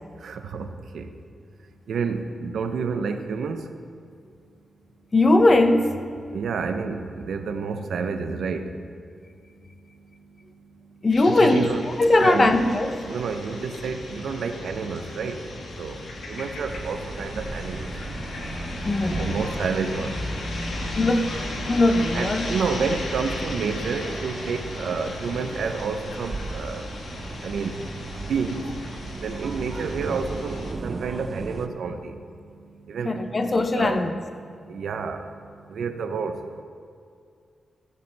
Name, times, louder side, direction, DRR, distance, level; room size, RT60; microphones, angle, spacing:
voice 1, 0.2-0.7 0.9-1.1 1.9-3.6 6.3-8.7 11.2-11.8 12.2-12.6 13.1-15.4 15.8-15.9 16.3-17.9 19.2-20.2 22.1-26.8 27.4-27.7 28.3-28.6 29.2-32.1 32.9-33.2 33.7-34.0 34.7-35.2 35.7-36.4, right 5 dB, 85° right, 7 dB, 0.6 m, -29 dB
voice 2, 5.1-6.0 11.0-11.7 12.0-13.0 18.8-19.5 21.0-21.4 21.7-22.5 33.0-34.1, left 2 dB, 30° left, 8 dB, 0.5 m, -20 dB
sound 1, 11.1-30.7, left 2 dB, 80° left, 1.3 m, -35 dB
sound 2, 16.7-31.7, right 3 dB, 40° right, 0.4 m, -37 dB
14.5 x 6.8 x 3.3 m, 2.3 s
wide cardioid pair, 130°, 0 cm